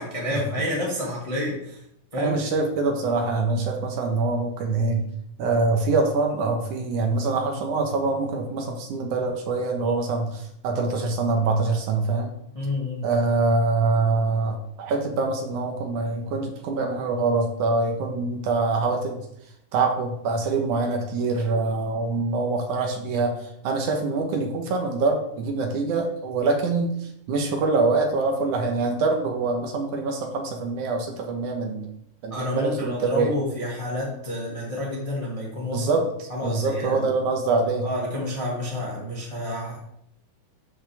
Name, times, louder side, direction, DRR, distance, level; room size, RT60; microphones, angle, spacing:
voice 1, 0.0-1.8 2.1-2.4 12.5-13.0 32.3-36.0 36.3-37.1 37.8-39.8, left 1 dB, 15° left, -4 dB, 1.1 m, -29 dB
voice 2, 2.2-5.1 5.4-12.3 13.0-19.2 19.7-31.9 32.2-33.3 35.7-37.9, right 3 dB, 70° right, 3 dB, 2.4 m, -24 dB
12.0 x 5.6 x 3.4 m, 0.75 s
omnidirectional pair, 3.8 m